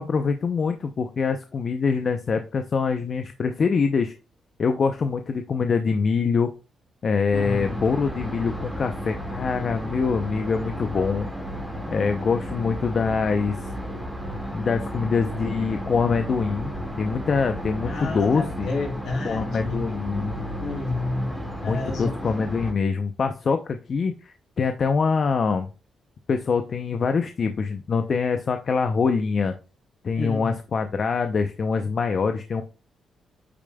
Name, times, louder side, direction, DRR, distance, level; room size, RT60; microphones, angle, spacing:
voice 1, 0.0-4.1 4.6-6.5 7.0-11.3 11.9-13.6 14.5-16.7 17.0-18.7 19.2-20.5 21.6-25.7 26.3-29.5 30.0-32.6, left 5 dB, 50° left, 0.6 m, -24 dB
voice 2, 7.3-7.8 17.9-19.8 20.6-21.3 21.6-22.1 30.2-30.5, left 3 dB, 75° left, 2.2 m, -30 dB
sound 1, 7.3-22.7, equal, 5° left, 1.9 m, -33 dB
8.5 x 5.0 x 2.3 m
cardioid pair, 85°, 0 cm